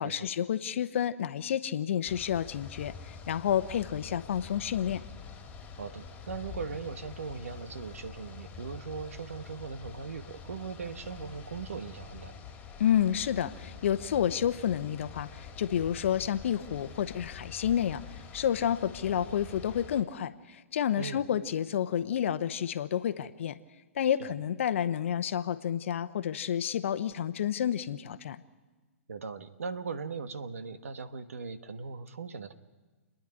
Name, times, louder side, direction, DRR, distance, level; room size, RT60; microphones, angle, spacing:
voice 1, 0.0-5.0 12.8-18.0 18.3-23.6 23.9-28.4, left 9 dB, 60° left, 13 dB, 0.9 m, -30 dB
sound 1, 2.1-20.0, left 6 dB, 20° left, 2.6 m, -46 dB
voice 2, 5.8-12.4 21.0-21.2 24.2-24.3 29.1-32.5, right 5 dB, 75° right, 10 dB, 1.4 m, -39 dB
29.5 x 10.5 x 9.8 m, 1.3 s
hypercardioid pair, 125°, 8 cm